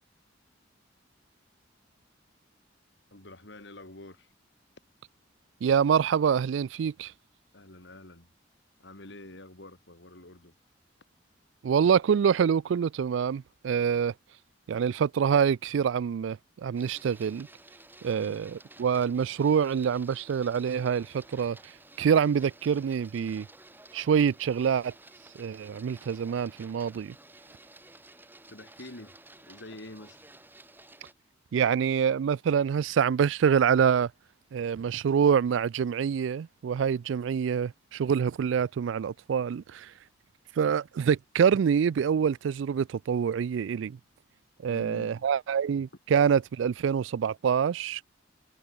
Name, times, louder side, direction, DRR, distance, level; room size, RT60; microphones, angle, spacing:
voice 1, 3.1-4.3 7.5-8.3 8.8-10.5 18.1-18.4 28.5-30.2 44.7-45.3, left 1 dB, 65° left, 3.8 m, -47 dB
voice 2, 5.6-7.1 11.6-14.1 14.7-17.5 18.0-23.5 23.9-24.9 25.4-27.2 31.5-34.1 34.5-39.9 40.6-44.0 44.6-48.0, right 7 dB, 75° right, 0.3 m, -26 dB
Printer, 16.8-31.1, right 2 dB, 10° right, 5.4 m, -53 dB
head